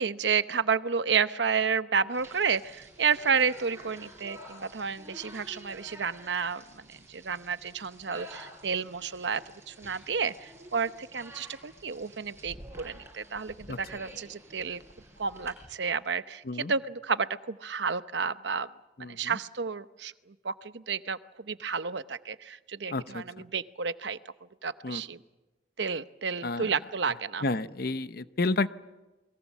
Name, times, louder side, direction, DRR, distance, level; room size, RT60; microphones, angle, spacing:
voice 1, 0.0-14.8 15.2-18.7 19.1-20.1 20.4-24.2 24.6-25.2 25.8-27.4, right 6 dB, 75° right, 13 dB, 0.8 m, -31 dB
sound 1, 2.1-15.7, right 1 dB, 15° right, 7.2 m, -50 dB
voice 2, 19.0-19.4 22.9-23.4 24.8-25.0 26.4-26.7 27.4-28.7, left 3 dB, 55° left, 13 dB, 0.8 m, -31 dB
29.0 x 21.5 x 7.4 m, 1.1 s
head